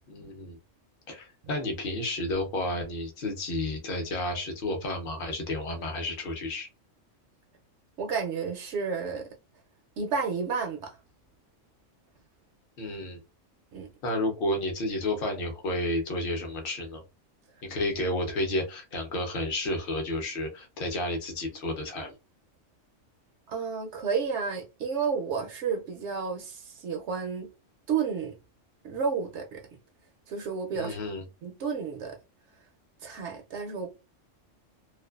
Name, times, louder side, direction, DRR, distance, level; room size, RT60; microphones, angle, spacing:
voice 1, 0.1-0.6 1.1-6.7 12.8-13.2 14.0-17.0 17.6-22.1 30.7-31.2, left 1 dB, 50° left, 0.8 m, -31 dB
voice 2, 8.0-9.3 10.0-11.0 13.7-13.9 23.5-27.5 27.9-28.4 28.8-29.6 30.3-31.0 31.4-32.2 33.0-33.9, right 5 dB, 70° right, 0.8 m, -31 dB
2.5 x 2.3 x 2.3 m
omnidirectional pair, 1.3 m